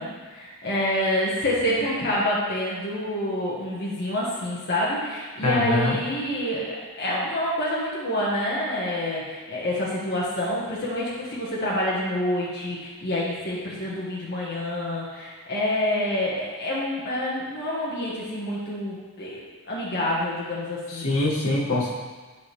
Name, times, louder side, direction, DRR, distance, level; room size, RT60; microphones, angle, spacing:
voice 1, 0.0-21.1, left 1 dB, 50° left, -6 dB, 1.5 m, -27 dB
voice 2, 5.4-6.0 21.0-21.9, left 2 dB, 85° left, -6 dB, 1.9 m, -23 dB
11.5 x 5.0 x 3.4 m, 1.3 s
head